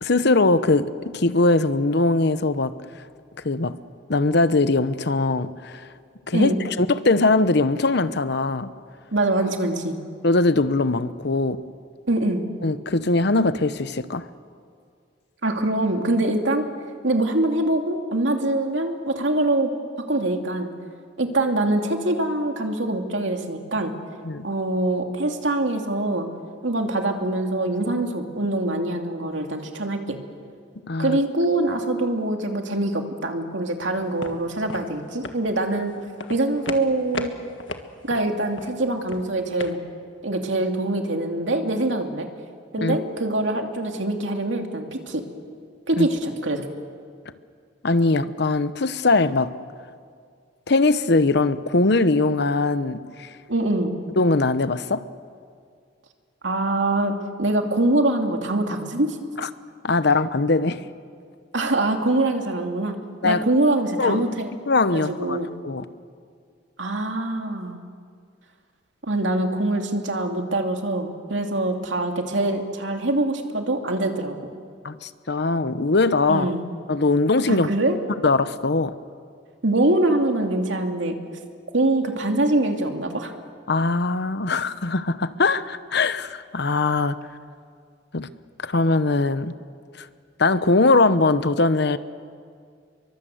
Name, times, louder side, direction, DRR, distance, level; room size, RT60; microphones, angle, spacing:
voice 1, 0.0-2.7 3.4-3.8 4.1-5.8 6.3-8.7 10.2-11.6 12.6-14.3 24.2-24.4 30.9-31.2 42.8-43.0 46.0-46.1 47.8-49.5 50.7-53.3 54.2-55.0 59.8-60.8 63.2-63.4 64.0-64.3 64.7-65.8 74.8-76.5 76.9-77.7 78.2-78.9 83.7-87.2 88.1-88.3 88.6-89.5 90.0-90.1 90.4-92.0, left 3 dB, 65° left, 13 dB, 1.0 m, -21 dB
voice 2, 9.1-10.0 12.1-12.4 15.4-16.7 17.0-19.7 20.1-20.7 21.2-23.9 24.4-26.3 26.6-30.2 31.0-36.0 36.3-37.3 38.0-39.8 40.2-42.3 42.7-45.2 45.9-46.6 53.5-53.9 56.4-59.2 61.5-63.0 63.2-64.5 64.9-65.5 66.8-67.8 69.0-74.5 76.3-76.7 77.5-78.0 79.6-81.2 81.7-83.3, right 2 dB, 90° right, 4 dB, 2.6 m, -24 dB
sound 1, 34.0-39.7, left 3 dB, 90° left, 1.6 m, -37 dB
29.0 x 23.0 x 7.9 m, 2.2 s
head